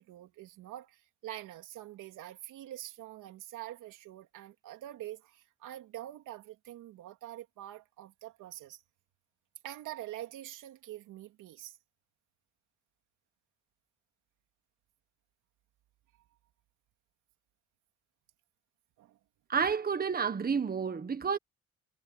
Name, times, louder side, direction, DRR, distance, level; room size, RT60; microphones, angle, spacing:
voice 1, 0.0-8.8 9.6-11.8 19.0-19.2, right 14 dB, 90° right, 3.2 m, -45 dB
voice 2, 19.5-21.4, right 6 dB, 30° right, 1.5 m, -30 dB
cardioid pair, 90°, 30 cm